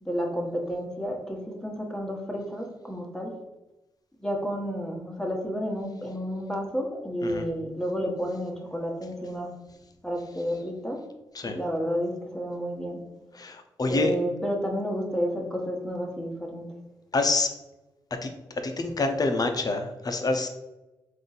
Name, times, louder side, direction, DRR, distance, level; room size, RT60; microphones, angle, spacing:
voice 1, 0.0-3.3 4.2-9.5 10.0-11.0 11.4-13.0 13.9-16.6, equal, 5° left, 0 dB, 1.3 m, -31 dB
voice 2, 13.3-14.1 17.1-17.5 18.2-20.5, left 3 dB, 40° left, 6 dB, 0.7 m, -27 dB
3.6 x 2.7 x 4.1 m, 1.0 s
hypercardioid pair, 40°, 10 cm